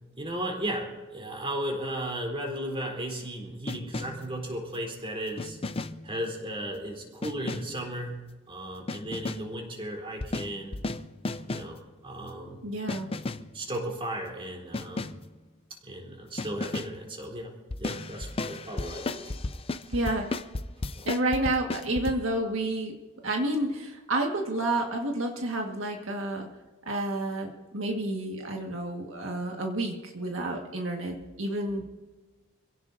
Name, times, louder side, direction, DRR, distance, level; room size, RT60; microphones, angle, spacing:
voice 1, 0.2-5.6 6.0-8.2 8.5-10.8 11.5-12.6 13.5-15.1 15.8-17.5 17.8-19.3 21.0-21.1, right 1 dB, 25° right, 0 dB, 3.8 m, -35 dB
sound 1, 3.7-4.3 5.4-6.1 7.2-7.8 8.9-9.6 10.2-11.8 12.9-13.6 14.7-15.3 16.4-17.0 17.7-22.1, left 2 dB, 30° left, 0.5 m, -34 dB
voice 2, 12.6-13.1 19.9-20.2 21.0-22.9 23.2-26.5 26.8-31.8, right 1 dB, 80° right, 1 dB, 1.8 m, -30 dB
27.5 x 17.0 x 2.7 m, 1.2 s
head